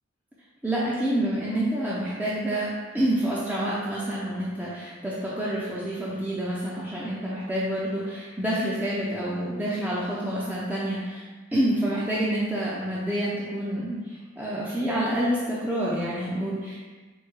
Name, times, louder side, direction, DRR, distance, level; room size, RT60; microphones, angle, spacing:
voice 1, 0.6-11.2 11.5-16.8, right 1 dB, 10° right, -7 dB, 0.4 m, -28 dB
4.6 x 2.2 x 4.5 m, 1.4 s
head